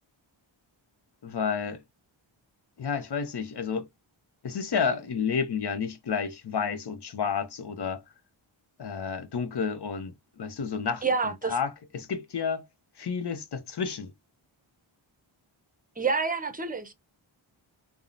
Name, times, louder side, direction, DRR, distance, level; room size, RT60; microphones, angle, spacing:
voice 1, 1.2-1.8 2.8-3.9 4.4-8.0 8.8-11.0 11.4-12.6 13.0-14.1, left 6 dB, 55° left, 0.8 m, -30 dB
voice 2, 11.0-11.6 16.0-16.9, right 4 dB, 15° right, 0.7 m, -28 dB
3.5 x 2.1 x 2.4 m
cardioid pair, 50°, 50 cm